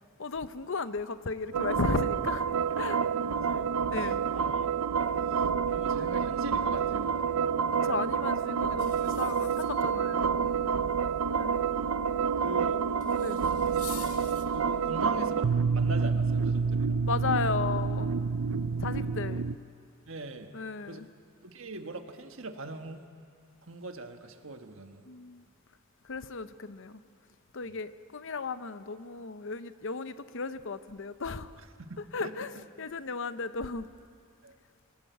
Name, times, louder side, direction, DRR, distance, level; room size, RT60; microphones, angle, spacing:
voice 1, 0.2-2.5 2.8-3.1 3.9-4.2 7.8-10.5 11.3-11.7 13.2-13.4 17.0-18.1 18.8-19.5 20.5-21.1 25.1-25.5 26.0-27.0 27.5-31.6 32.1-33.9, left 4 dB, 60° left, 12 dB, 0.7 m, -35 dB
sound 1, 1.5-19.6, right 6 dB, 90° right, 0.5 m, -28 dB
voice 2, 3.3-3.7 4.3-7.2 10.8-10.9 12.4-12.8 14.5-17.0 18.9-19.1 20.0-20.5 20.9-21.0 21.4-23.0 23.6-25.0 27.6-27.7 31.8-32.3 34.4-34.5, right 2 dB, 65° right, 6 dB, 1.5 m, -41 dB
sound 2, 8.8-10.1 13.0-14.4, left 10 dB, 80° left, 1.6 m, -47 dB
23.5 x 19.0 x 8.2 m, 2.3 s
head